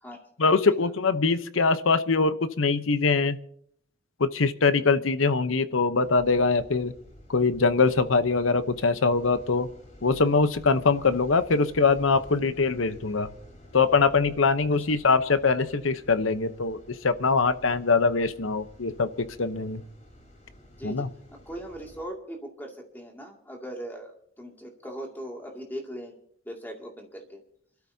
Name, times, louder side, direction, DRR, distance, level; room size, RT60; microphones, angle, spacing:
voice 1, 0.4-3.4 4.2-6.9 7.3-9.7 10.0-13.3 13.7-19.8 20.8-21.1, left 4 dB, 90° left, 12 dB, 0.8 m, -23 dB
sound 1, 6.0-22.0, equal, 40° left, 3.8 m, -51 dB
voice 2, 20.8-26.1 26.4-27.4, equal, 10° left, 1 dB, 2.3 m, -40 dB
28.5 x 13.0 x 2.8 m, 0.64 s
head